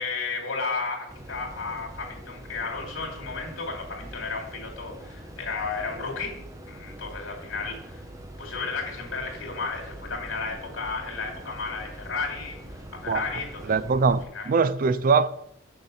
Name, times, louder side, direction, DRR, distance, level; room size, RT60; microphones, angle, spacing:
voice 1, 0.0-6.4 6.7-8.0 8.4-13.8 14.3-14.5, left 4 dB, 70° left, 2.7 m, -33 dB
sound 1, 1.1-14.2, right 1 dB, 15° right, 0.8 m, -43 dB
voice 2, 13.7-15.3, right 5 dB, 45° right, 0.4 m, -22 dB
6.7 x 5.7 x 6.4 m
head